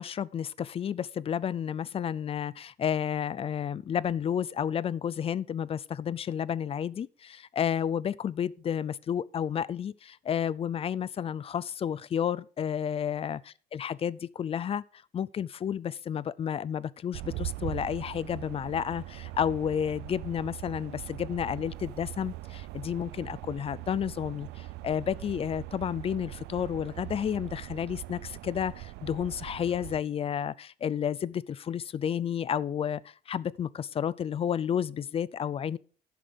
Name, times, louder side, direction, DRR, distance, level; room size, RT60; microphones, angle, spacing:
voice 1, 0.0-13.4 13.7-14.8 15.1-35.8, left 8 dB, 35° left, 0.5 m, -31 dB
sound 1, 17.1-30.0, right 18 dB, 85° right, 0.4 m, -41 dB
11.0 x 6.0 x 5.1 m
cardioid pair, 110°, 17 cm